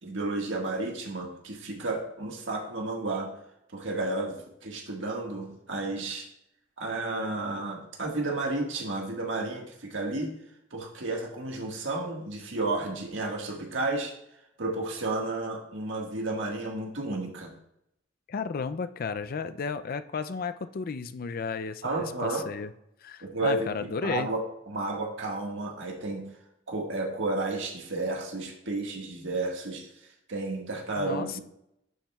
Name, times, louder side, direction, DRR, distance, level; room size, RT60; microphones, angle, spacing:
voice 1, 0.0-3.3 3.7-6.3 6.8-10.3 10.7-14.1 14.6-17.5 21.8-22.4 23.2-23.7 24.0-24.4 24.7-26.2 26.7-29.9 30.3-31.4, right 2 dB, 75° right, 0 dB, 1.6 m, -32 dB
voice 2, 18.3-22.7 23.0-24.3 31.0-31.4, left 5 dB, 50° left, 11 dB, 0.4 m, -33 dB
11.0 x 7.3 x 2.3 m, 0.78 s
head